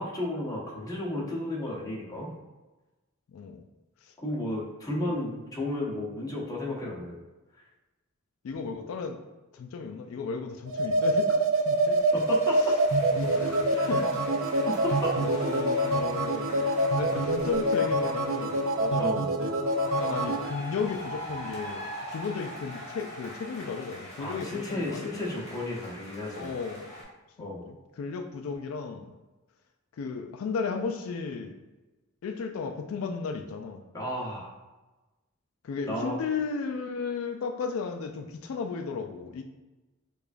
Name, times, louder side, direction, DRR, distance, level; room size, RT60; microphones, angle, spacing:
voice 1, 0.0-2.3 4.2-7.2 12.1-12.7 13.7-14.0 14.5-15.1 16.6-16.8 19.0-19.4 24.2-26.5 27.4-27.6 33.9-34.5 35.9-36.2, left 1 dB, 15° left, -4 dB, 0.8 m, -33 dB
voice 2, 3.3-3.6 5.0-5.1 8.4-9.2 9.5-12.0 13.2-14.0 15.2-19.6 20.0-25.4 26.3-27.0 27.4-29.1 30.0-31.6 32.2-33.8 35.6-39.4, left 5 dB, 90° left, 5 dB, 0.3 m, -34 dB
sound 1, 10.7-20.5, right 1 dB, 65° right, 0.4 m, -26 dB
sound 2, 11.6-19.0 19.6-27.0, equal, 35° left, 1.3 m, -43 dB
4.7 x 2.4 x 2.5 m, 1.1 s
head